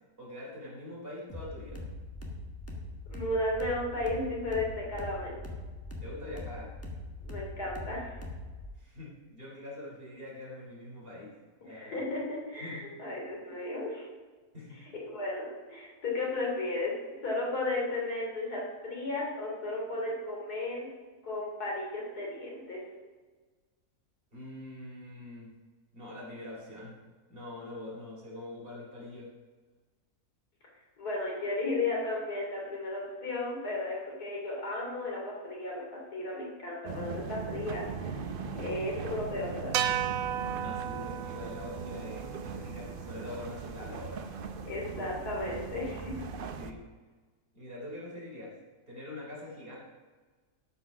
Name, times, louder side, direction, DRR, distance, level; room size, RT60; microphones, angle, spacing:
voice 1, 0.2-1.8 6.0-6.7 8.8-11.3 11.6-12.0 12.6-12.9 14.5-14.9 24.3-25.5 25.9-27.0 27.3-29.3 40.6-44.3 46.6-46.8 47.5-48.6 48.9-49.8, left 1 dB, 35° right, -5 dB, 3.7 m, -44 dB
sound 1, 1.3-8.7, left 2 dB, 10° left, 1.4 m, -42 dB
voice 2, 3.1-5.3 7.2-8.2 11.6-14.1 14.7-16.9 17.2-20.9 21.2-22.8 31.0-35.8 36.1-38.2 38.5-39.8 44.6-46.2, left 2 dB, 85° left, -3 dB, 3.5 m, -34 dB
sound 2, 36.8-46.7, right 5 dB, 50° right, 0.6 m, -39 dB
sound 3, 39.7-44.1, right 10 dB, 70° right, 1.0 m, -35 dB
12.5 x 5.9 x 5.9 m, 1.3 s
omnidirectional pair, 1.6 m